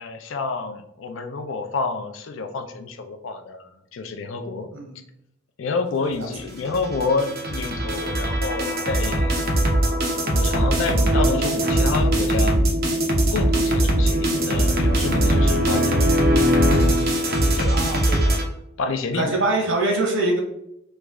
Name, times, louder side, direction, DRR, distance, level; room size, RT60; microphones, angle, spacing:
voice 1, 0.0-4.7 5.6-9.4 10.2-12.6 13.3-16.2 17.6-17.7 18.8-19.3, left 4 dB, 75° left, 6 dB, 0.4 m, -28 dB
sound 1, 6.5-18.4, right 1 dB, 50° right, 0.7 m, -20 dB
voice 2, 14.5-15.0 17.7-18.4 19.1-20.4, right 2 dB, 80° right, 0 dB, 1.0 m, -25 dB
3.1 x 2.4 x 3.5 m, 0.79 s
head